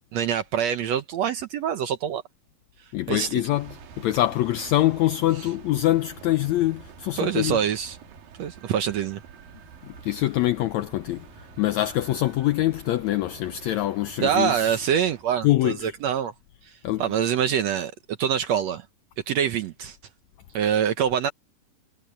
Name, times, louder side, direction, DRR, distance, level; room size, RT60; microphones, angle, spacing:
voice 1, 0.1-2.2 3.1-3.4 7.2-8.0 8.4-9.2 14.2-16.3 16.7-18.9 19.3-20.0 20.5-21.3, right 9 dB, 70° right, 1.8 m, -25 dB
voice 2, 2.9-7.6 9.8-14.8 15.4-15.9 16.8-17.0, left 15 dB, 85° left, 1.6 m, -24 dB
sound 1, 3.5-15.2, right 7 dB, 85° right, 3.8 m, -47 dB
omnidirectional pair, 3.9 m